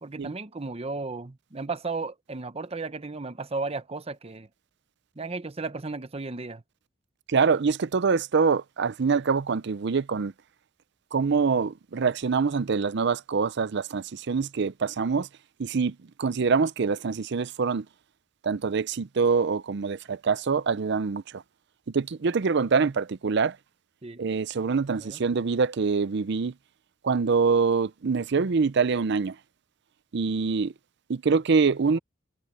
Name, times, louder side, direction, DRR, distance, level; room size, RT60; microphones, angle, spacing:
voice 1, 0.0-4.5 5.2-6.6 24.0-24.2 24.9-25.2, right 3 dB, 30° right, 0.8 m, -34 dB
voice 2, 7.3-10.3 11.1-15.3 15.6-17.9 18.4-21.4 21.9-23.6 24.2-26.5 27.0-29.4 30.1-30.7 31.1-32.0, right 5 dB, 60° right, 0.5 m, -25 dB
head